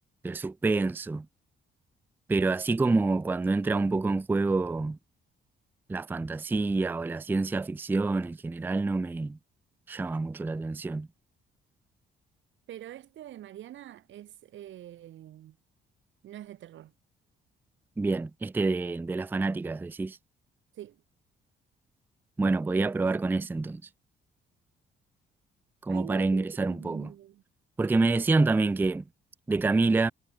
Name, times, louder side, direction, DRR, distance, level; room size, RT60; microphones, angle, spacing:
voice 1, 0.2-1.3 2.3-5.0 5.9-9.4 9.9-11.1 18.0-20.2 22.4-23.8 25.8-27.1 27.8-29.0 29.5-30.1, right 3 dB, 10° right, 0.4 m, -27 dB
voice 2, 12.7-15.6 16.2-16.9 20.7-21.0 25.9-27.4, right 12 dB, 75° right, 1.6 m, -45 dB
cardioid pair, 90°, 20 cm